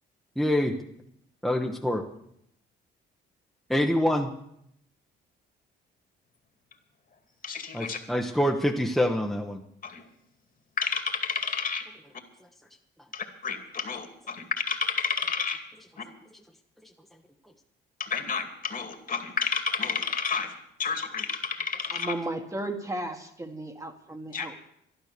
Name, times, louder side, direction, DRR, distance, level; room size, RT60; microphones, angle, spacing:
voice 1, 0.4-0.8 1.4-2.0 3.7-4.3 7.7-9.6, left 1 dB, ahead, 1 dB, 1.1 m, -25 dB
voice 2, 7.4-8.0 9.8-10.0 10.8-11.8 13.1-15.6 16.0-16.1 18.0-20.5 20.8-22.1 24.3-24.5, left 5 dB, 45° left, 6 dB, 2.4 m, -30 dB
voice 3, 21.9-24.6, right 1 dB, 15° right, 5 dB, 1.5 m, -34 dB
12.5 x 11.5 x 6.8 m, 0.73 s
cardioid pair, 90°, 20 cm